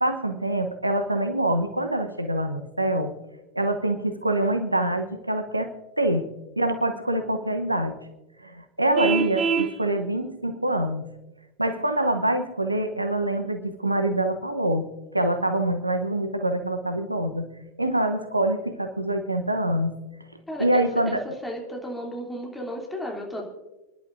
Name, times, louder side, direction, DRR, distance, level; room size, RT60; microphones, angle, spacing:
voice 1, 0.0-3.1 3.5-5.7 6.0-6.3 6.6-8.0 8.4-11.1 11.6-14.9 15.1-17.5 17.8-19.9 20.6-21.2, right 1 dB, 85° right, 8 dB, 0.9 m, -25 dB
Vehicle horn car horn honking, 9.0-9.7, right 6 dB, 25° right, 0.8 m, -24 dB
voice 2, 20.5-23.4, equal, 5° left, 0 dB, 3.0 m, -34 dB
28.0 x 11.0 x 2.6 m, 1.1 s
figure-of-eight pair, 90°, 0 cm